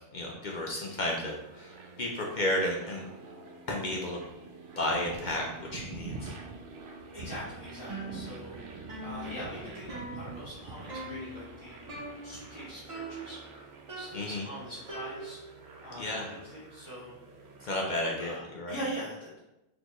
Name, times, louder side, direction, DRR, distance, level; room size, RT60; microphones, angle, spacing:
voice 1, 0.1-3.0 3.7-4.2 4.8-6.3 14.1-14.5 16.0-16.3 17.6-18.8, left 1 dB, 55° left, -1 dB, 0.6 m, -32 dB
sound 1, 1.3-17.7, right 3 dB, 85° right, 0.9 m, -46 dB
voice 2, 7.1-8.6 9.0-11.9 12.2-13.4 13.9-15.4 15.8-17.2 18.2-19.4, equal, 25° left, -13 dB, 1.4 m, -42 dB
sound 2, 7.9-8.6 8.9-10.6 10.9-11.4 11.9-12.6 12.9-13.5 13.9-15.6, right 2 dB, 35° right, 0.8 m, -42 dB
4.2 x 2.8 x 3.0 m, 0.93 s
omnidirectional pair, 1.2 m